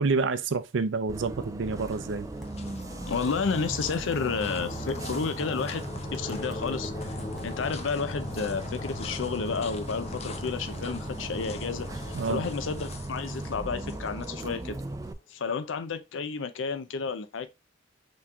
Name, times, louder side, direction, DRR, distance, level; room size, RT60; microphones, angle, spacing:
voice 1, 0.0-2.3 12.1-12.4, right 4 dB, 80° right, 0.5 m, -28 dB
Bus, 1.1-15.1, right 2 dB, 15° right, 0.3 m, -38 dB
sound 1, 1.9-15.1, left 3 dB, 35° left, 0.6 m, -40 dB
sound 2, 2.4-2.5 3.1-3.4 4.1-4.2 4.9-5.2 6.1-7.5, equal, ahead, 0.9 m, -47 dB
voice 2, 3.1-5.8 6.1-6.9 7.4-14.8 15.3-17.5, left 5 dB, 90° left, 0.5 m, -31 dB
5.8 x 3.1 x 2.3 m
head